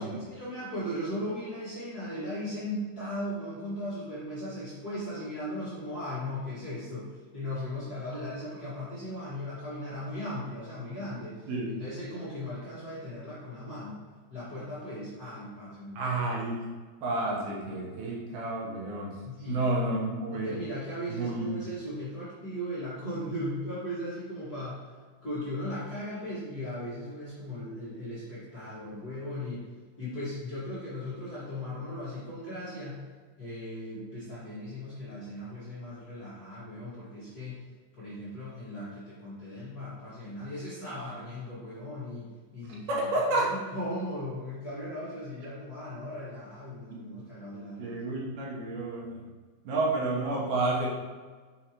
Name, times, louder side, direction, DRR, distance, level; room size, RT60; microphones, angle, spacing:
voice 1, 0.0-11.5 11.8-14.0 14.3-16.0 19.2-19.6 20.3-24.8 25.2-29.6 30.0-33.0 33.4-37.6 38.0-43.1 43.4-48.1, left 1 dB, 55° left, -12 dB, 1.0 m, -37 dB
voice 2, 11.5-11.8 16.0-16.7 17.0-19.2 19.5-20.5 21.1-21.5 42.9-43.5 47.8-49.2 49.6-50.9, right 2 dB, 70° right, -3 dB, 2.6 m, -30 dB
6.9 x 4.7 x 2.9 m, 1.5 s
omnidirectional pair, 4.9 m